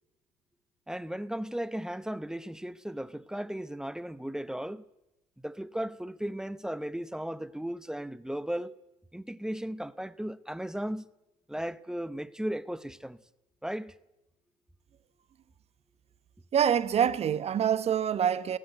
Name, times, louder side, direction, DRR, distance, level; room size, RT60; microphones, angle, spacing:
voice 1, 0.9-4.8 5.4-8.7 9.1-11.0 11.5-13.2 13.6-13.9, right 1 dB, 5° right, 0.9 m, -36 dB
voice 2, 16.5-18.6, right 8 dB, 40° right, 1.1 m, -26 dB
18.0 x 18.0 x 8.1 m
hypercardioid pair, 75°, 17 cm